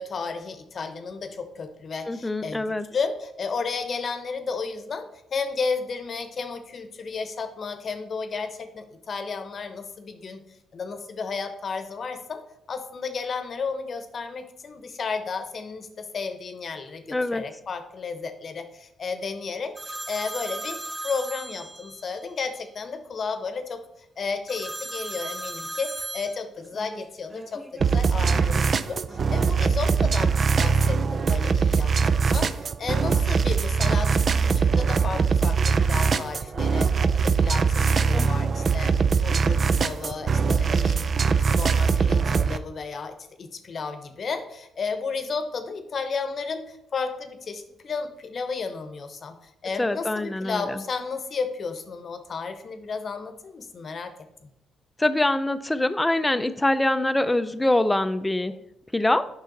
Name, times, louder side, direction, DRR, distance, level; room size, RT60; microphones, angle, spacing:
voice 1, 0.0-2.6 2.9-10.4 10.7-12.4 12.7-20.8 21.0-23.8 24.2-30.3 30.6-41.1 41.5-54.1, left 5 dB, 50° left, 9 dB, 0.9 m, -33 dB
voice 2, 2.1-2.9 17.1-17.4 38.1-38.3 49.8-50.8 55.0-58.6 58.9-59.3, left 1 dB, 10° left, 12 dB, 0.5 m, -24 dB
sound 1, 19.8-22.2 24.5-28.7 29.1-30.2 31.1-32.0, right 1 dB, 20° right, 0.9 m, -38 dB
sound 2, 27.8-42.6, right 5 dB, 45° right, 0.4 m, -22 dB
7.6 x 5.6 x 3.9 m, 0.85 s
cardioid pair, 90°, 0 cm